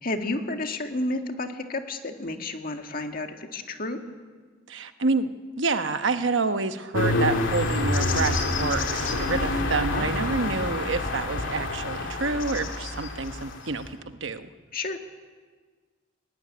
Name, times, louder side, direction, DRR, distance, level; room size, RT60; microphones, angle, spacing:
voice 1, 0.0-4.0 9.9-10.1 14.7-15.0, left 2 dB, 45° left, 5 dB, 1.8 m, -31 dB
voice 2, 4.7-5.3 5.6-14.5, right 3 dB, 70° right, 9 dB, 1.1 m, -28 dB
sound 1, 6.9-13.9, left 2 dB, 70° left, 2.9 m, -27 dB
19.0 x 18.0 x 9.9 m, 1.5 s
head